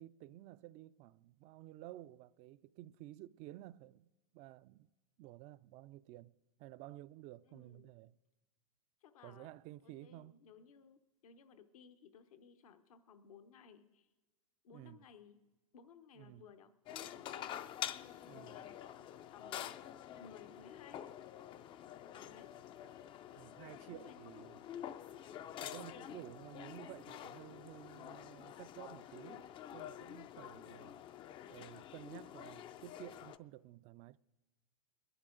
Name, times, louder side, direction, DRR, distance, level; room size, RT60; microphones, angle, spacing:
voice 1, 0.0-4.1 4.3-4.9 5.2-6.3 6.6-8.1 9.2-10.4 14.7-15.0 16.2-16.5 18.2-18.6 23.4-24.6 25.6-31.0 31.5-34.2, right 15 dB, 40° right, 0.4 m, -53 dB
voice 2, 7.5-7.9 9.0-9.5 9.8-14.1 14.6-15.4 15.7-19.7 20.1-21.1 22.0-22.5 23.7-24.6 30.4-31.0, left 6 dB, 75° left, 0.9 m, -60 dB
sound 1, 16.9-33.4, left 10 dB, 25° left, 0.4 m, -48 dB
22.0 x 11.0 x 3.8 m
hypercardioid pair, 115°, 18 cm